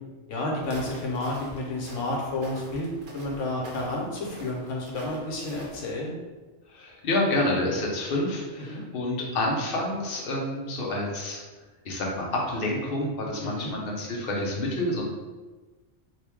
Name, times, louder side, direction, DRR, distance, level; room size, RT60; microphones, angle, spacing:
voice 1, 0.3-2.9 3.1-6.2 8.7-8.8 13.4-13.7, left 2 dB, 75° left, -1 dB, 1.1 m, -31 dB
Walk footsteps, 0.6-5.9, right 2 dB, 50° right, 0.7 m, -45 dB
voice 2, 6.7-11.4 11.8-15.0, left 1 dB, 55° left, -2 dB, 0.9 m, -28 dB
3.0 x 2.6 x 3.4 m, 1.2 s
omnidirectional pair, 1.3 m